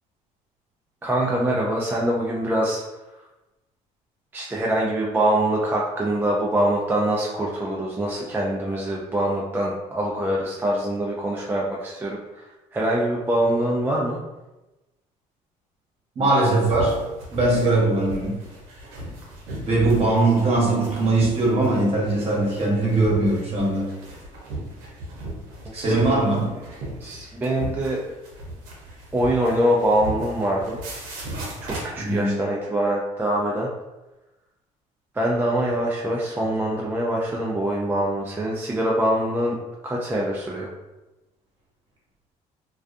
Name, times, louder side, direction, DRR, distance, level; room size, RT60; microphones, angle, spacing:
voice 1, 1.0-2.8 4.3-12.5 12.7-14.2 25.9-26.0 27.0-28.0 29.1-30.8 31.6-33.7 35.1-39.6 39.8-40.7, right 1 dB, 15° right, -3 dB, 0.3 m, -24 dB
voice 2, 16.1-17.0 17.3-18.4 19.7-23.9 25.7-26.5 32.0-32.4, right 2 dB, 40° right, -4 dB, 1.1 m, -21 dB
sound 1, 16.7-32.2, equal, 85° right, 0.7 m, -36 dB
2.3 x 2.3 x 2.5 m, 1.0 s
cardioid pair, 95°, 15 cm